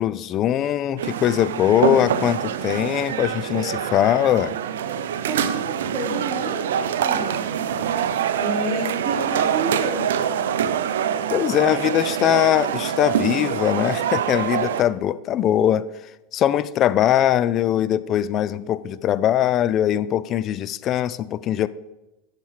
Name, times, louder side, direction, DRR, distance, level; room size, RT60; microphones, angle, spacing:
voice 1, 0.0-4.5 11.3-15.9 16.3-21.7, left 11 dB, 40° left, 16 dB, 0.4 m, -21 dB
sound 1, 1.0-14.8, right 8 dB, 80° right, 0.5 m, -25 dB
voice 2, 5.3-7.4 8.4-10.0, right 2 dB, 35° right, -2 dB, 3.2 m, -29 dB
8.8 x 5.9 x 4.8 m, 1.0 s
hypercardioid pair, 110°, 0 cm